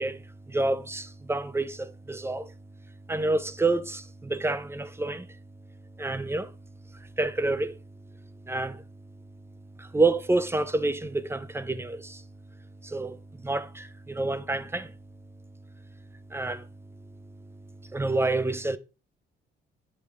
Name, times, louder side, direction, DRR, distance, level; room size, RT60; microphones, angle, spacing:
voice 1, 0.0-2.5 3.1-5.4 6.0-6.5 6.9-7.8 8.4-8.8 9.8-12.2 12.8-14.9 16.3-16.7 17.8-18.8, right 2 dB, 10° right, 0.6 m, -28 dB
8.8 x 4.8 x 3.5 m
cardioid pair, 90°, 20 cm